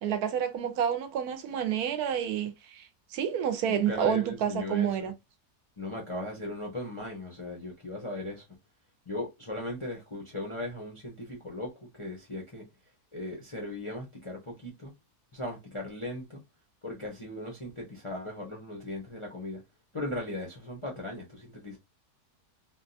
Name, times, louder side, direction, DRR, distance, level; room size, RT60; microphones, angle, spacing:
voice 1, 0.0-2.9 3.1-5.1, right 8 dB, 80° right, 1.1 m, -29 dB
voice 2, 3.7-5.1 5.8-8.4 9.1-12.7 13.1-14.9 15.3-16.4 16.8-19.6 19.9-21.8, left 1 dB, 35° left, 0.5 m, -38 dB
3.6 x 2.2 x 2.6 m
omnidirectional pair, 1.6 m